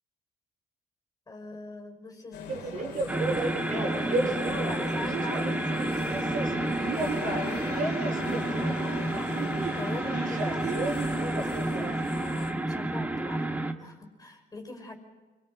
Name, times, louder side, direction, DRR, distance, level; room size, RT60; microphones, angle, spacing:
voice 1, 1.3-2.7 3.7-6.4 7.2-14.9, left 2 dB, 20° left, 4 dB, 5.4 m, -43 dB
sound 1, 2.3-12.5, left 9 dB, 85° left, 2.2 m, -42 dB
sound 2, 2.5-11.9, right 3 dB, 50° right, 5.1 m, -33 dB
sound 3, 3.1-13.7, right 2 dB, 10° right, 1.4 m, -30 dB
29.0 x 23.5 x 5.2 m, 1.3 s
cardioid pair, 110°, 17 cm